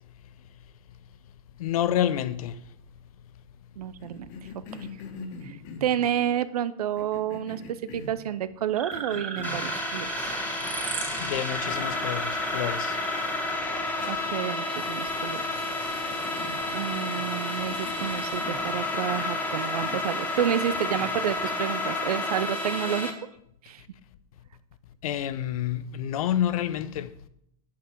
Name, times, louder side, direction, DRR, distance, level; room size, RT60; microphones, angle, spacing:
voice 1, 1.6-2.6 11.2-13.0 25.0-27.1, left 11 dB, 70° left, 0.8 m, -28 dB
voice 2, 3.8-4.3 5.4-10.4 14.1-15.4 16.7-23.1 23.6-23.8, right 10 dB, 80° right, 0.7 m, -30 dB
Cough, 4.0-6.2 6.9-8.2 8.9-9.7 11.1-11.2 11.7-12.1 12.4-12.5 14.0-14.5 15.1-15.5 15.9-17.4 17.7-18.7 19.1-19.4 19.8-20.1 20.7-21.2, left 3 dB, 45° left, 1.7 m, -43 dB
sound 1, 8.7-13.6, right 6 dB, 65° right, 2.3 m, -36 dB
sound 2, 9.4-23.1, left 2 dB, 10° left, 1.3 m, -31 dB
8.5 x 7.9 x 4.6 m
hypercardioid pair, 130°, 19 cm